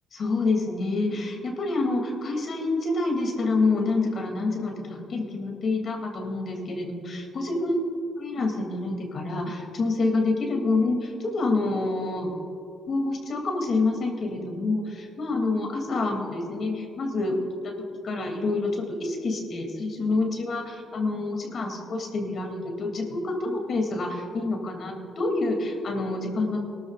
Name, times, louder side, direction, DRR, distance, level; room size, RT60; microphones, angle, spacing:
voice 1, 0.1-7.8 8.2-12.3 12.9-17.8 18.0-26.6, left 3 dB, 55° left, 1 dB, 2.8 m, -27 dB
22.0 x 13.0 x 2.5 m, 2.6 s
cardioid pair, 90°, 0 cm